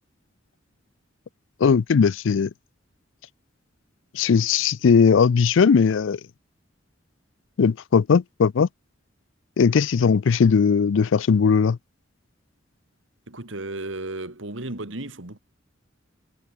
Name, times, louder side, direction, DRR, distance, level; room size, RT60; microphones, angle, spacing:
voice 1, 1.6-2.5 4.1-6.2 7.6-8.7 9.6-11.8, left 6 dB, 70° left, 0.4 m, -18 dB
voice 2, 13.3-15.4, right 2 dB, 75° right, 2.8 m, -34 dB
head